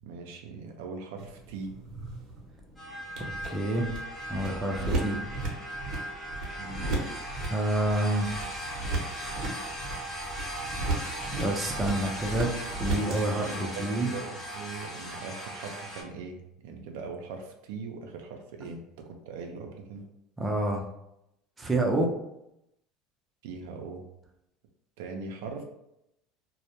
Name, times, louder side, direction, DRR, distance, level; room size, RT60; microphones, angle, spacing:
voice 1, 0.0-1.8 6.6-6.8 13.3-20.0 23.4-24.1 25.0-25.6, right 4 dB, 85° right, 3 dB, 0.4 m, -41 dB
sound 1, 1.2-13.2, right 2 dB, 55° right, 0.7 m, -36 dB
sound 2, 2.8-16.0, right 1 dB, 10° left, 0.8 m, -38 dB
voice 2, 3.2-3.9 4.3-5.2 7.5-8.3 11.4-12.5 12.8-14.1 20.4-20.8 21.6-22.1, right 1 dB, 15° right, 0 dB, 0.5 m, -28 dB
2.1 x 2.1 x 2.9 m, 0.82 s
supercardioid pair, 115°, 0 cm